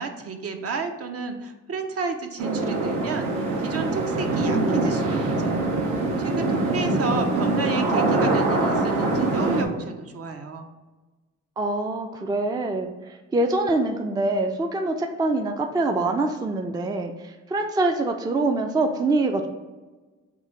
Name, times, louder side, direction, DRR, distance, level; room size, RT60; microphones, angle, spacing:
voice 1, 0.0-5.6 5.9-10.7, right 4 dB, 50° right, 6 dB, 0.6 m, -32 dB
sound 1, 2.4-9.6, right 2 dB, 80° right, 0.8 m, -23 dB
voice 2, 11.6-19.5, right 2 dB, 15° right, 5 dB, 0.3 m, -25 dB
3.8 x 2.7 x 4.5 m, 1.2 s
cardioid pair, 90°, 30 cm